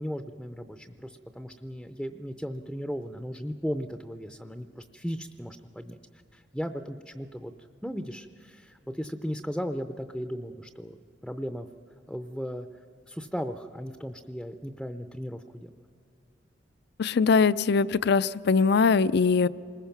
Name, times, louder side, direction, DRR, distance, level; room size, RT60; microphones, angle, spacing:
voice 1, 0.0-6.0 6.3-7.5 7.8-11.7 12.1-12.7 13.1-15.7, equal, ahead, 7 dB, 0.5 m, -36 dB
voice 2, 17.0-19.5, left 5 dB, 65° left, 17 dB, 0.5 m, -22 dB
27.5 x 20.5 x 5.9 m, 2.6 s
head